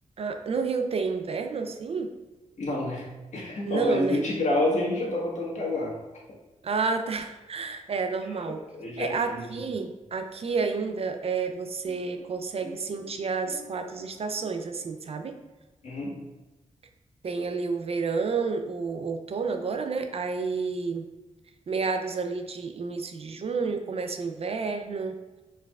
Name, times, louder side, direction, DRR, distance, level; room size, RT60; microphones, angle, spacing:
voice 1, 0.2-2.1 3.7-4.2 6.6-8.6 9.0-15.4 17.2-21.0 21.7-25.2, right 4 dB, 50° right, 6 dB, 0.4 m, -30 dB
voice 2, 2.6-3.0 3.3-5.9 8.7-9.5 15.8-16.1, left 2 dB, 65° left, -4 dB, 1.5 m, -28 dB
sound 1, 11.8-15.5, equal, 85° right, 0.9 m, -49 dB
4.6 x 4.6 x 2.3 m, 1.1 s
cardioid pair, 95°, 13 cm